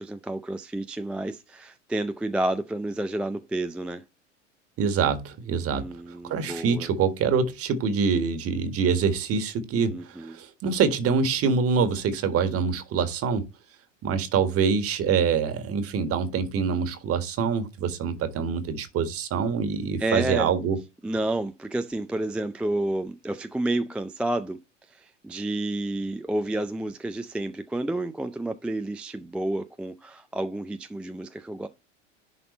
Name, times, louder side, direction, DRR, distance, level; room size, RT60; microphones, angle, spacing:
voice 1, 0.0-4.0 5.7-6.9 9.9-10.4 20.0-20.5 21.0-24.6 24.9-31.7, right 1 dB, 5° right, 0.4 m, -30 dB
voice 2, 4.8-5.9 6.2-13.4 14.0-20.8, right 6 dB, 40° right, 1.7 m, -25 dB
11.0 x 4.2 x 4.2 m
hypercardioid pair, 85°, 37 cm